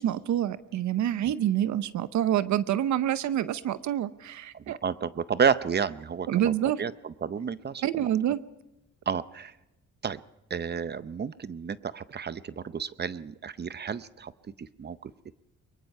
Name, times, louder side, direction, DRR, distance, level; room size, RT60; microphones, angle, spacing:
voice 1, 0.0-4.8 6.3-6.8 7.8-8.4, right 11 dB, 70° right, 14 dB, 0.8 m, -27 dB
voice 2, 4.7-6.5 6.8-8.1 9.1-9.5 10.0-10.2 10.5-14.3 14.6-15.1, right 6 dB, 35° right, 15 dB, 0.7 m, -31 dB
23.0 x 21.5 x 5.5 m, 0.92 s
cardioid pair, 90°, 30 cm